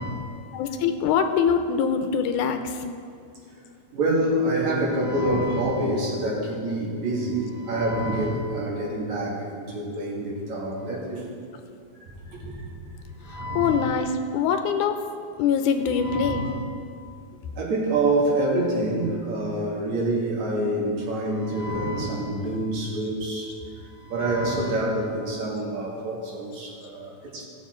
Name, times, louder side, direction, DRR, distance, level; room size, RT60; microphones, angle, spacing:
voice 1, 0.0-0.3 3.9-11.2 12.2-12.7 13.2-14.0 15.9-16.6 17.6-23.5 23.8-27.4, right 1 dB, 65° right, -4 dB, 3.3 m, -27 dB
voice 2, 0.5-2.8 13.3-15.0 15.4-16.4, left 6 dB, 80° left, 7 dB, 2.1 m, -24 dB
17.0 x 7.2 x 4.4 m, 2.3 s
omnidirectional pair, 3.6 m